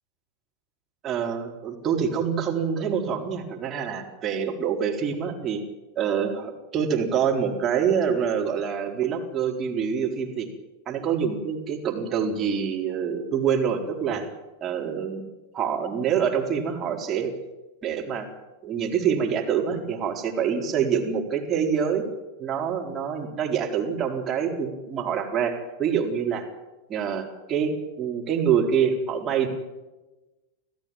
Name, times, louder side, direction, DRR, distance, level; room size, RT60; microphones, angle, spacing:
voice 1, 1.0-5.6 6.0-10.5 10.9-14.3 14.6-15.2 15.5-17.3 17.8-18.3 18.6-22.0 22.4-26.5 26.9-29.5, right 7 dB, 25° right, 1 dB, 4.3 m, -26 dB
26.5 x 15.5 x 9.0 m, 1.1 s
figure-of-eight pair, 90°, 0 cm